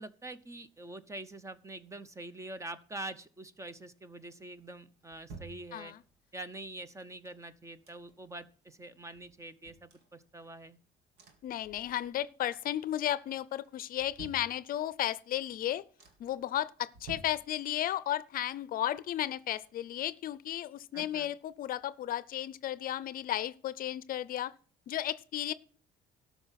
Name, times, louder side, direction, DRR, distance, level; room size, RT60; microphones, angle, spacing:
voice 1, 0.0-5.9 6.3-10.8 20.9-21.3, right 2 dB, 15° right, 0.7 m, -45 dB
sound 1, 4.5-6.3 7.0-8.4 8.8-8.9 9.1-10.7 11.2-12.3 12.7-13.2 13.6-15.1 15.5-15.6 16.0-16.5 16.9-18.1 18.4-20.2 20.5-20.6, right 4 dB, 75° right, 2.0 m, -54 dB
voice 2, 11.4-15.8 16.2-24.5 24.9-25.5, left 12 dB, 60° left, 0.5 m, -34 dB
12.5 x 5.7 x 5.8 m
cardioid pair, 110°, 17 cm